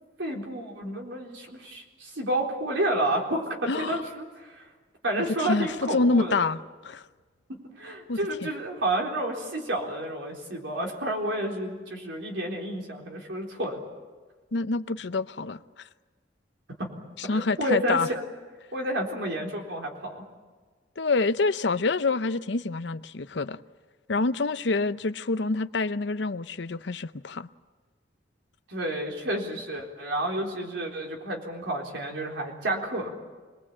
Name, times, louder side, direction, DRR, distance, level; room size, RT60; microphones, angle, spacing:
voice 1, 0.2-4.7 5.0-6.5 7.5-13.8 16.8-16.9 17.2-18.0 18.7-20.2 28.7-33.1, right 1 dB, 90° right, 4.1 m, -30 dB
voice 2, 3.7-4.0 5.4-7.0 8.1-8.2 14.5-15.6 17.2-18.1 21.0-23.6 24.1-27.5, left 3 dB, 70° left, 0.7 m, -27 dB
26.5 x 20.5 x 8.6 m
head